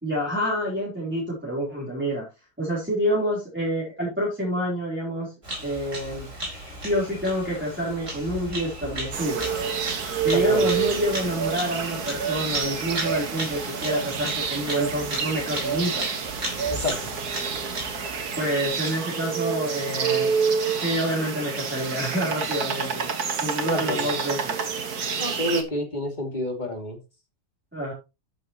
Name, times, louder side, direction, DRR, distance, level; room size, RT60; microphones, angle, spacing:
voice 1, 0.0-2.3 2.6-5.3 5.6-6.3 6.8-9.5 10.2-16.1 18.4-20.3 20.8-23.1 23.4-24.6 27.7-27.9, equal, 5° right, -7 dB, 3.8 m, -27 dB
Bird vocalization bird call bird song, 5.4-18.7, right 1 dB, 50° right, 5.4 m, -36 dB
sound 1, 9.1-25.6, right 6 dB, 70° right, 2.0 m, -28 dB
voice 2, 10.3-10.7 16.7-17.2 23.7-24.1 25.2-27.0, left 1 dB, 30° left, 2 dB, 2.9 m, -29 dB
13.0 x 8.0 x 3.0 m, 0.27 s
omnidirectional pair, 1.7 m